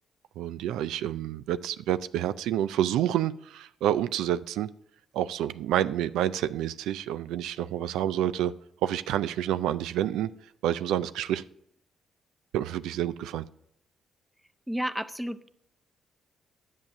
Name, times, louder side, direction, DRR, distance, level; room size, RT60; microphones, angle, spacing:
voice 1, 0.4-4.7 5.1-8.5 8.8-10.3 10.6-11.4 12.5-13.4, right 11 dB, 90° right, 0.3 m, -28 dB
voice 2, 14.7-15.5, equal, 5° right, 0.7 m, -31 dB
10.5 x 7.4 x 6.3 m
cardioid pair, 80°, 0 cm